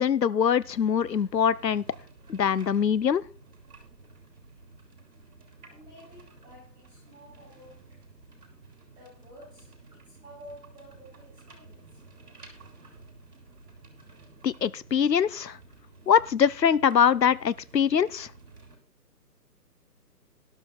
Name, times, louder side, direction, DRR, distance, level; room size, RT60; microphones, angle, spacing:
voice 1, 0.0-1.8 2.3-3.2 14.4-15.6 16.1-18.3, left 8 dB, 80° left, 1.0 m, -23 dB
sound 1, 0.6-18.8, right 3 dB, 60° right, 6.8 m, -52 dB
voice 2, 5.7-8.2 8.9-12.0, equal, 10° right, 7.5 m, -51 dB
13.0 x 12.5 x 4.3 m
hypercardioid pair, 165°, 49 cm